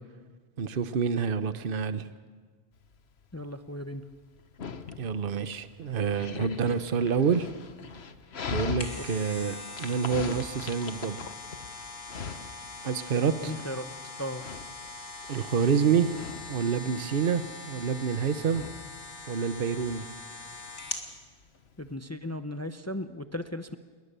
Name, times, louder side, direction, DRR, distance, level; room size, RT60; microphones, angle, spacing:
voice 1, 0.6-2.0 5.0-7.5 8.5-11.3 12.8-13.5 15.3-16.1 16.5-18.6 19.3-20.0, right 6 dB, 50° right, 12 dB, 1.1 m, -27 dB
Dog, 2.8-22.0, left 6 dB, 65° left, 1.3 m, -42 dB
voice 2, 3.3-4.0 9.1-9.2 13.4-13.9 14.2-14.4 21.8-23.8, left 1 dB, 15° left, 9 dB, 0.8 m, -36 dB
sound 1, 8.6-21.1 21.5-21.6, left 3 dB, 80° left, 2.8 m, -42 dB
28.0 x 21.5 x 6.9 m, 1.5 s
omnidirectional pair, 1.2 m